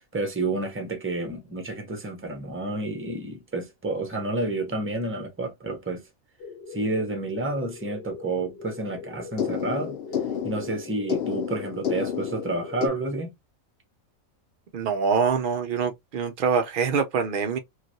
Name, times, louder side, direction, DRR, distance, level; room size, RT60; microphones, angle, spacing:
voice 1, 0.1-6.0 6.7-10.0 10.4-13.3, right 2 dB, 15° right, 0.4 m, -30 dB
sound 1, 6.4-12.9, left 7 dB, 60° left, 0.7 m, -32 dB
voice 2, 14.7-17.6, right 6 dB, 70° right, 0.5 m, -24 dB
3.1 x 2.4 x 2.6 m
omnidirectional pair, 1.5 m